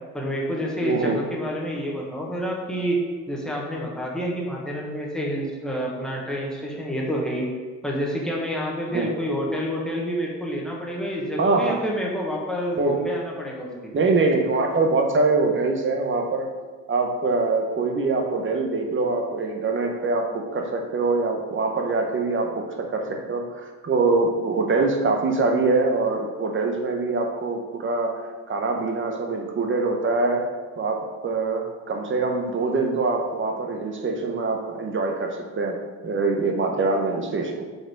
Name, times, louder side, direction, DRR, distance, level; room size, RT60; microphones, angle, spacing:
voice 1, 0.1-3.0 3.3-7.5 7.8-14.0, equal, ahead, -3 dB, 1.4 m, -28 dB
voice 2, 0.8-1.2 8.9-9.1 11.4-11.7 12.8-13.0 13.9-16.5 16.9-28.2 28.5-30.5 30.8-35.8 36.0-37.6, right 3 dB, 40° right, 2 dB, 1.0 m, -24 dB
5.4 x 4.1 x 4.6 m, 1.4 s
cardioid pair, 90°, 30 cm